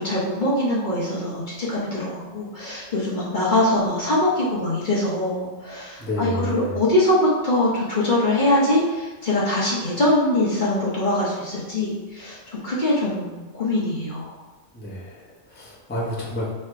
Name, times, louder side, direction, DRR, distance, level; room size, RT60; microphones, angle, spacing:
voice 1, 0.0-14.3, left 1 dB, 45° left, -7 dB, 1.0 m, -23 dB
voice 2, 6.0-6.8 14.7-16.5, equal, 10° left, -6 dB, 0.8 m, -30 dB
3.3 x 2.8 x 4.6 m, 1.2 s
omnidirectional pair, 1.3 m